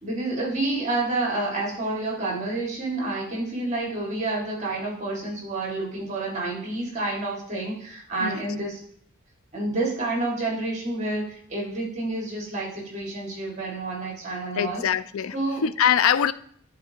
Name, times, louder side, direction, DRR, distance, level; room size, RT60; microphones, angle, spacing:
voice 1, 0.0-8.8 9.5-14.8 15.3-15.6, right 2 dB, 35° right, 1.9 m, -29 dB
voice 2, 14.5-15.4 15.6-16.3, left 8 dB, 90° left, 0.4 m, -22 dB
11.0 x 4.2 x 2.9 m
head